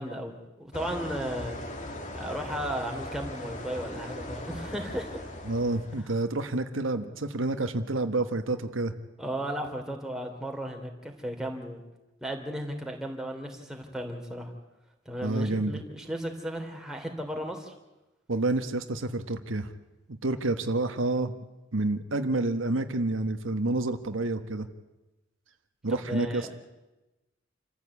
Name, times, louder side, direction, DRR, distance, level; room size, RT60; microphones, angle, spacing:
voice 1, 0.0-1.6 2.1-5.2 9.2-11.8 12.2-14.5 15.0-17.7 25.9-26.5, equal, 5° right, 2 dB, 3.2 m, -35 dB
sound 1, 0.7-6.1, left 1 dB, 40° left, 2.6 m, -39 dB
voice 2, 5.5-8.9 15.2-15.8 18.3-19.7 20.2-21.3 21.7-24.7 25.8-26.5, right 2 dB, 80° right, 7 dB, 1.4 m, -29 dB
28.0 x 14.5 x 8.5 m, 1.0 s
head